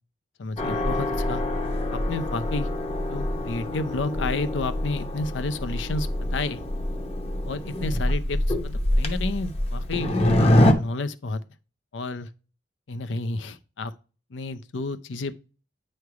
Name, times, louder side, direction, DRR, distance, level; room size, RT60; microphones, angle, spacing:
voice 1, 0.4-1.4 1.9-2.7 3.1-6.6 7.5-11.4 11.9-12.3 12.9-13.9 14.3-15.3, left 3 dB, 85° left, 0.6 m, -31 dB
sound 1, 0.6-10.7, left 1 dB, 35° left, 0.8 m, -25 dB
9.4 x 3.3 x 4.7 m
head